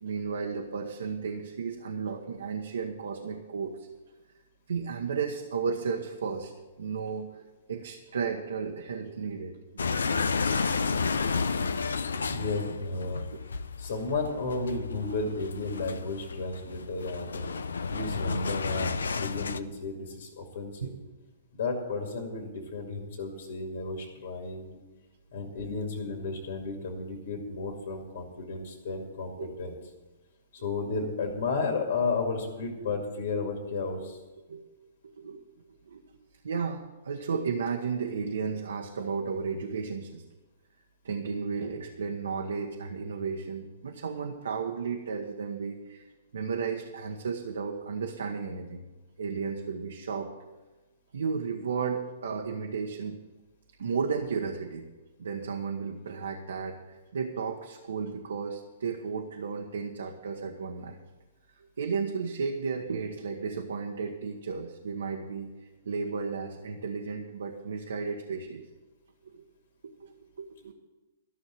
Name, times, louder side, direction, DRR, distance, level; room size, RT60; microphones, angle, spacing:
voice 1, 0.0-3.9 4.7-6.5 6.8-9.9 11.3-11.4 11.9-12.3 20.8-20.9 29.4-29.5 34.5-34.6 35.2-35.4 35.8-36.0 36.4-40.2 41.0-46.1 46.3-48.8 49.2-50.3 51.1-53.2 53.8-54.9 55.2-61.0 61.5-68.7 69.2-69.5 69.8-70.1 70.4-70.7, right 5 dB, 80° right, 2 dB, 1.1 m, -34 dB
sound 1, 9.8-19.6, left 4 dB, 90° left, 0.6 m, -31 dB
voice 2, 12.3-13.3 13.8-17.4 17.9-20.9 21.5-24.8 25.3-29.7 30.6-34.2, left 3 dB, 70° left, 2 dB, 2.3 m, -33 dB
13.0 x 6.5 x 8.9 m, 1.2 s
hypercardioid pair, 130°, 0 cm